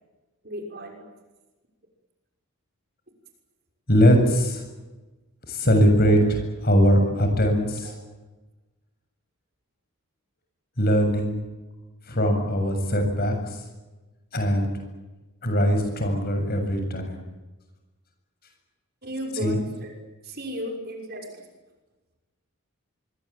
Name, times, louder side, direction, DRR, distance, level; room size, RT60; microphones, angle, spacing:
voice 1, 0.4-1.1 6.1-6.3 7.2-7.5 7.8-8.0 19.0-19.9 20.2-21.4, equal, 45° right, 3 dB, 6.2 m, -35 dB
voice 2, 3.9-4.4 5.5-6.2 6.6-7.9 10.8-11.4 12.1-13.3 14.3-14.7 15.4-17.2 19.4-19.6, equal, 45° left, 5 dB, 7.5 m, -20 dB
24.5 x 24.5 x 8.8 m, 1.1 s
head